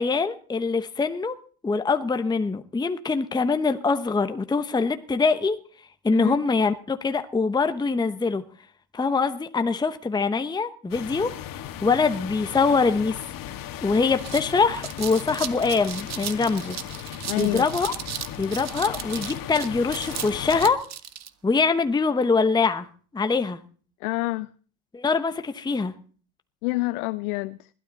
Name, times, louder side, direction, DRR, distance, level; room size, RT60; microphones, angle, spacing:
voice 1, 0.0-1.4 1.6-5.6 6.0-8.4 8.9-11.3 11.8-13.2 13.5-13.6 13.8-17.9 18.4-20.8 21.4-22.9 23.1-23.6 24.9-25.9, left 4 dB, 10° left, 1.0 m, -24 dB
Indian Ocean - closeup, 10.9-20.7, left 11 dB, 45° left, 2.1 m, -37 dB
sound 1, 13.5-13.6 13.9-21.3, right 10 dB, 35° right, 1.4 m, -36 dB
voice 2, 17.2-17.7 24.0-24.5 26.6-27.7, left 23 dB, 70° left, 0.8 m, -27 dB
20.5 x 13.0 x 4.1 m
supercardioid pair, 100°, 46 cm